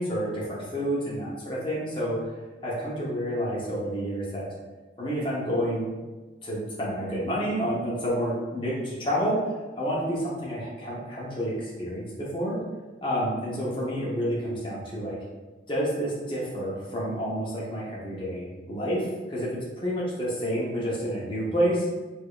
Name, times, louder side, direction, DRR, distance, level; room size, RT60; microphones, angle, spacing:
voice 1, 0.0-2.2 2.6-4.5 5.0-5.9 6.4-9.4 9.8-12.6 13.0-15.2 15.7-19.5 19.8-21.9, equal, 25° left, -6 dB, 0.8 m, -29 dB
4.8 x 2.6 x 2.4 m, 1.2 s
head